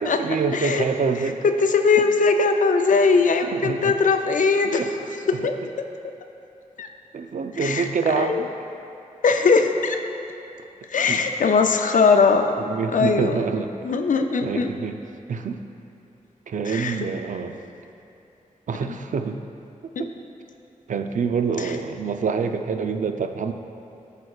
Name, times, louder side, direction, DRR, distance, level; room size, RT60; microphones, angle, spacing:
voice 1, 0.0-1.4 3.4-4.0 4.8-5.4 7.1-8.5 11.1-11.2 12.6-13.7 14.4-15.0 15.3-15.6 16.5-17.6 18.7-19.4 20.0-20.1 20.9-23.5, right 5 dB, 70° right, 7 dB, 0.4 m, -26 dB
voice 2, 0.5-0.8 1.4-4.8 5.3-5.5 6.8-6.9 7.6-7.8 8.2-8.4 9.2-10.0 10.9-12.5 12.9-13.4 13.8-14.7 16.6-17.0 18.9-19.0 20.0-20.1 21.6-21.7, left 4 dB, 70° left, 5 dB, 0.5 m, -20 dB
13.5 x 4.8 x 2.4 m, 2.8 s
wide cardioid pair, 135°, 14 cm